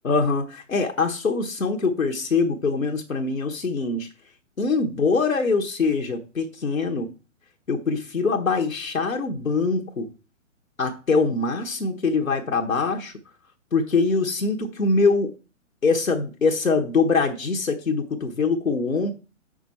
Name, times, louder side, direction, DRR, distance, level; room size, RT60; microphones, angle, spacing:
voice 1, 0.0-4.1 4.6-7.1 7.7-10.1 10.8-13.2 13.7-15.4 15.8-19.1, left 4 dB, 85° left, 1.2 m, -23 dB
7.5 x 6.1 x 4.2 m
figure-of-eight pair, 120°, 40 cm